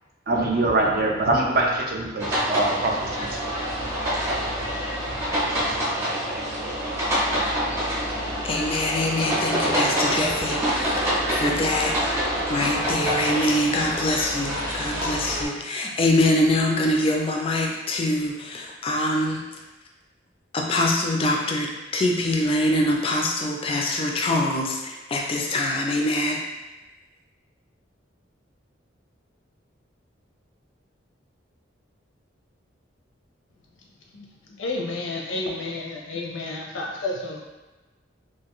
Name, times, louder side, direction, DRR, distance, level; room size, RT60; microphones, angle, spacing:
voice 1, 0.3-3.5 3.8-3.9 4.4-4.8 5.1-5.2 5.5-5.7, right 2 dB, 50° right, -1 dB, 0.4 m, -24 dB
sound 1, 2.2-15.4, equal, 15° right, 0.6 m, -26 dB
voice 2, 8.4-12.0 12.5-19.4 20.5-26.4, left 1 dB, 30° left, 0 dB, 0.3 m, -24 dB
voice 3, 34.6-37.5, left 2 dB, 85° left, -1 dB, 0.6 m, -31 dB
2.5 x 2.4 x 2.9 m, 1.1 s
head